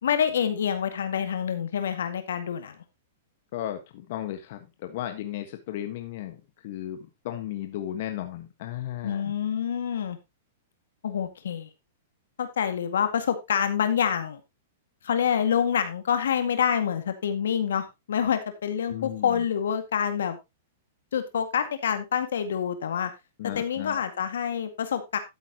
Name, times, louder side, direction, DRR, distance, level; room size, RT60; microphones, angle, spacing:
voice 1, 0.0-2.8 9.0-10.2 11.0-11.7 12.4-14.4 15.0-20.4 21.1-23.1 23.6-25.2, left 8 dB, 80° left, 9 dB, 2.0 m, -27 dB
voice 2, 3.5-9.3 18.9-19.4 23.4-24.0, left 12 dB, 60° left, 7 dB, 1.5 m, -35 dB
12.5 x 8.4 x 3.0 m, 0.22 s
hypercardioid pair, 130°, 0 cm